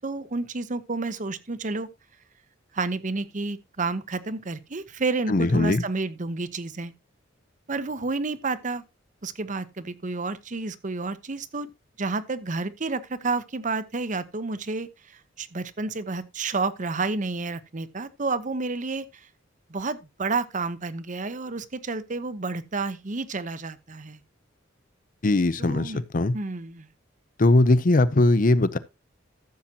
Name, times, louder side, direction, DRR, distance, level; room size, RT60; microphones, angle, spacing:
voice 1, 0.0-1.9 2.7-6.9 7.7-8.8 9.2-11.7 12.0-19.3 19.7-24.2 25.6-26.0 26.3-26.9, right 3 dB, 40° right, 0.8 m, -30 dB
voice 2, 5.3-5.8 25.2-26.4 27.4-28.8, left 2 dB, 45° left, 0.7 m, -20 dB
14.5 x 7.3 x 2.9 m
head